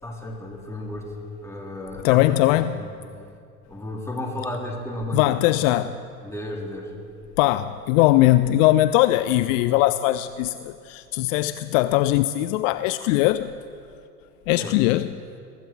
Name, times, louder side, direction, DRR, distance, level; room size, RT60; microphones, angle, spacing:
voice 1, 0.0-1.1 1.4-2.3 2.8-3.0 3.7-5.4 6.2-6.9 14.6-14.8, left 1 dB, 5° left, 3.6 m, -33 dB
voice 2, 2.0-2.8 5.1-6.0 7.4-13.5 14.5-15.1, left 16 dB, 55° left, 0.6 m, -20 dB
23.0 x 13.5 x 4.6 m
hypercardioid pair, 85°, 46 cm